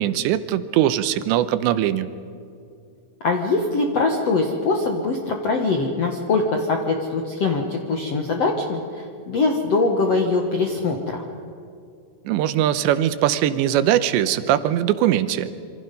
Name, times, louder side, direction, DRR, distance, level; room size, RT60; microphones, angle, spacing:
voice 1, 0.0-2.1 12.3-15.5, right 11 dB, 85° right, 12 dB, 3.0 m, -21 dB
voice 2, 3.2-11.2, left 3 dB, 60° left, 2 dB, 1.6 m, -22 dB
27.5 x 25.5 x 5.4 m, 2.4 s
omnidirectional pair, 5.2 m